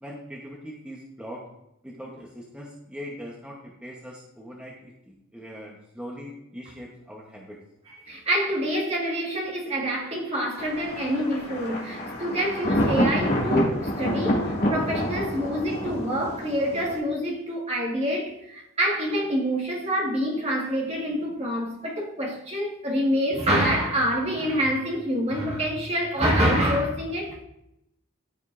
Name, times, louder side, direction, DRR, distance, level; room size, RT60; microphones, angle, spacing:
voice 1, 0.0-1.4 1.8-7.6, equal, 5° right, 1.0 m, -41 dB
voice 2, 8.1-27.4, equal, 30° right, 1.7 m, -26 dB
Thunder, 10.6-17.0, equal, 50° left, 2.1 m, -27 dB
14.0 x 5.3 x 2.6 m
head